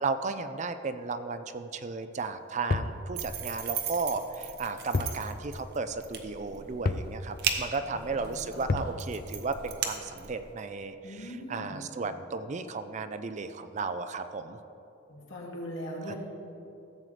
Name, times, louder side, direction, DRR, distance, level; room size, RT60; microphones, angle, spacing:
voice 1, 0.0-14.6 16.0-16.1, right 4 dB, 35° right, 10 dB, 0.4 m, -34 dB
sound 1, 2.7-3.0 4.9-5.2 5.5-5.6 6.8-7.1 8.7-9.0, left 3 dB, 45° left, 0.4 m, -29 dB
sound 2, 3.2-10.5, right 7 dB, 55° right, 0.8 m, -37 dB
voice 2, 7.7-8.7 11.0-11.8 15.1-16.1, equal, 80° left, -3 dB, 2.2 m, -41 dB
15.0 x 7.6 x 3.3 m, 2.9 s
head